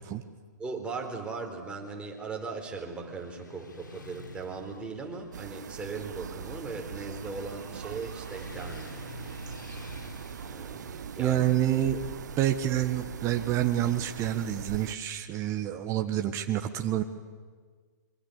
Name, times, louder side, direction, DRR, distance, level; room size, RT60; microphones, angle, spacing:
voice 1, 0.6-9.0 10.5-11.4, right 4 dB, 10° right, 2 dB, 4.5 m, -38 dB
Motorcycle / Traffic noise roadway noise, 1.8-15.9, left 2 dB, 90° left, 3.9 m, -50 dB
sound 1, 5.3-15.0, right 8 dB, 70° right, 0.9 m, -41 dB
voice 2, 11.2-12.0 12.4-17.0, right 12 dB, 30° right, 6 dB, 1.4 m, -28 dB
26.5 x 23.5 x 8.3 m, 1.5 s
hypercardioid pair, 120°, 10 cm